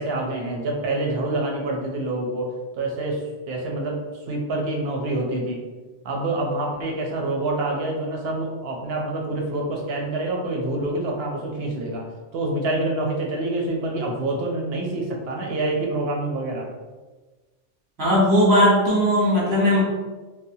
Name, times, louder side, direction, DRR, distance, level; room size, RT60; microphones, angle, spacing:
voice 1, 0.0-4.0 4.3-5.6 6.0-12.0 12.3-16.7, right 2 dB, 65° right, 0 dB, 0.7 m, -26 dB
voice 2, 18.0-19.8, equal, 20° right, -7 dB, 0.8 m, -18 dB
2.8 x 2.0 x 2.6 m, 1.3 s
omnidirectional pair, 1.2 m